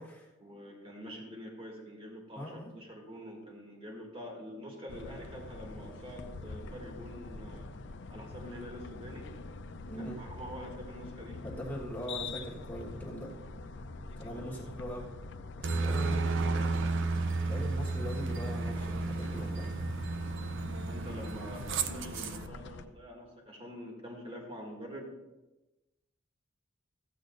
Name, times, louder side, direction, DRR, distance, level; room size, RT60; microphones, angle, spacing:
voice 1, 0.4-7.7 8.1-9.3 10.0-11.4 14.3-14.7 15.8-16.0 20.9-25.1, equal, 30° right, -1 dB, 2.0 m, -46 dB
voice 2, 2.3-2.7 9.9-10.2 11.4-13.3 14.2-15.1 15.6-16.4 17.0-17.1 17.4-19.8, equal, 10° left, -6 dB, 1.4 m, -41 dB
sound 1, 4.9-22.9, left 3 dB, 60° left, 0.6 m, -45 dB
Aircraft, 15.6-22.5, right 3 dB, 65° right, 0.6 m, -33 dB
14.5 x 8.3 x 2.6 m, 1.1 s
head